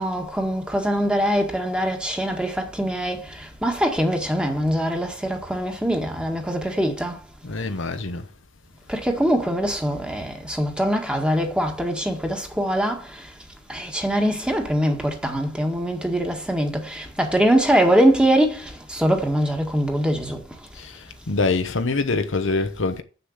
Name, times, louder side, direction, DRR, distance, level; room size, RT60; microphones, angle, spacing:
voice 1, 0.0-7.2 8.9-13.2 13.7-20.4, equal, 5° right, 1.8 m, -23 dB
voice 2, 7.4-8.3 20.8-23.0, left 3 dB, 65° left, 1.0 m, -25 dB
7.6 x 6.7 x 6.6 m
head